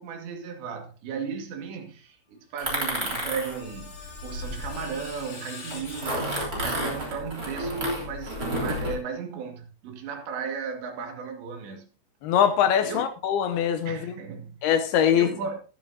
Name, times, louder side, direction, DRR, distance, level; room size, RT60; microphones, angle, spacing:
voice 1, 0.0-6.3 6.5-11.9 12.8-13.0 13.8-14.7 15.1-15.6, right 6 dB, 75° right, 4.2 m, -35 dB
Screech, 2.6-6.8, left 4 dB, 60° left, 5.5 m, -44 dB
sound 1, 2.6-5.2 5.7-8.9, right 1 dB, 20° right, 3.1 m, -31 dB
voice 2, 12.2-14.1 14.6-15.3, left 9 dB, 75° left, 2.5 m, -22 dB
12.5 x 12.5 x 2.8 m
omnidirectional pair, 5.1 m